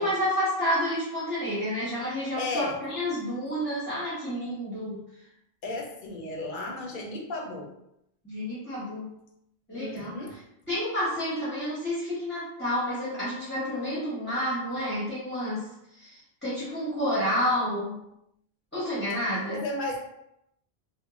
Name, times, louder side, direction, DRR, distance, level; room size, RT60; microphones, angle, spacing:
voice 1, 0.0-5.0 8.2-9.1 9.7-10.1 10.7-15.7 16.0-18.0 18.7-19.6, equal, 15° left, -10 dB, 0.6 m, -29 dB
voice 2, 2.4-2.8 5.6-7.7 9.7-10.4 19.5-20.0, left 2 dB, 60° left, 1 dB, 0.6 m, -34 dB
2.9 x 2.1 x 2.3 m, 0.81 s
omnidirectional pair, 1.0 m